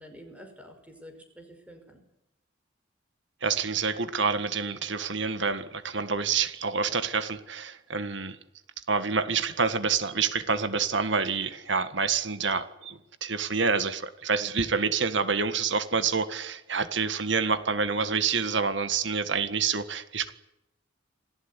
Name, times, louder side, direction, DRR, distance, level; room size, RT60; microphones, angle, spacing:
voice 1, 0.0-2.0, equal, 5° right, 5 dB, 5.4 m, -48 dB
voice 2, 3.4-8.4 8.9-20.3, right 5 dB, 65° right, 11 dB, 1.7 m, -27 dB
27.0 x 17.5 x 9.9 m, 0.88 s
head